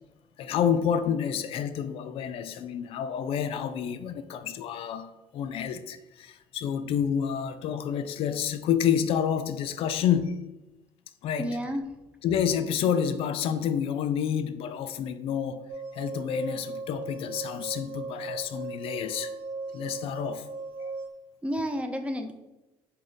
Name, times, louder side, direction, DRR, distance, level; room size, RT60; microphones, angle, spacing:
voice 1, 0.4-10.4 11.2-11.6 12.2-15.6 15.9-19.3 19.7-20.4, left 8 dB, 65° left, 0.4 m, -29 dB
voice 2, 11.4-11.8 21.4-22.3, equal, 10° right, 0.4 m, -30 dB
sound 1, 15.7-21.1, right 3 dB, 50° right, 0.7 m, -38 dB
4.9 x 2.7 x 3.8 m
cardioid pair, 130°, 10 cm